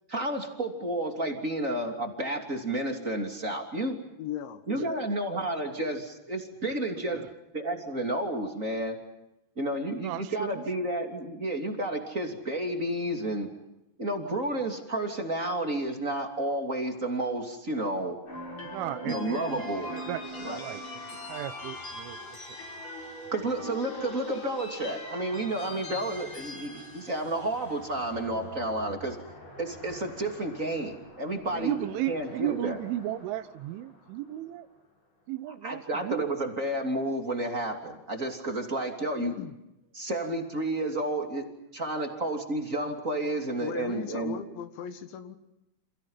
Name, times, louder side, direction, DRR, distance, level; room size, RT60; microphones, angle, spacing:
voice 1, 0.1-4.0 4.7-7.2 7.5-9.0 9.6-13.5 14.0-18.2 19.0-19.9 20.4-20.6 23.3-29.2 29.6-31.7 32.1-32.8 35.6-39.3 39.9-41.5 41.7-44.4, right 1 dB, 20° right, 3 dB, 2.4 m, -31 dB
voice 2, 4.2-5.0 39.2-39.6 43.6-45.4, left 9 dB, 75° left, 9 dB, 3.9 m, -38 dB
voice 3, 10.0-10.6 18.6-19.6 19.9-20.2 20.6-22.4 31.5-34.7 35.3-36.3, right 14 dB, 85° right, 13 dB, 3.6 m, -35 dB
sound 1, 18.3-34.5, left 1 dB, 35° left, 6.6 m, -42 dB
29.5 x 28.0 x 5.7 m, 0.90 s
omnidirectional pair, 5.4 m